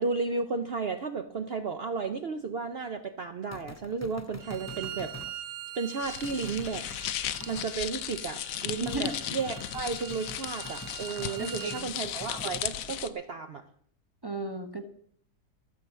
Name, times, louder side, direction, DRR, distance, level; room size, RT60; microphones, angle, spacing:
voice 1, 0.0-5.2 5.7-6.9 7.5-13.6, right 4 dB, 50° right, 8 dB, 0.8 m, -33 dB
sound 1, 3.5-5.3 6.2-7.7 8.9-12.7, left 2 dB, 25° left, 0.3 m, -46 dB
Bowed string instrument, 4.4-11.9, right 12 dB, 75° right, 1.2 m, -44 dB
sound 2, 6.0-13.1, left 11 dB, 70° left, 1.0 m, -36 dB
voice 2, 8.8-9.1 11.4-11.7 14.2-14.8, right 2 dB, 15° right, 7 dB, 1.0 m, -34 dB
14.0 x 6.9 x 7.3 m, 0.63 s
omnidirectional pair, 1.6 m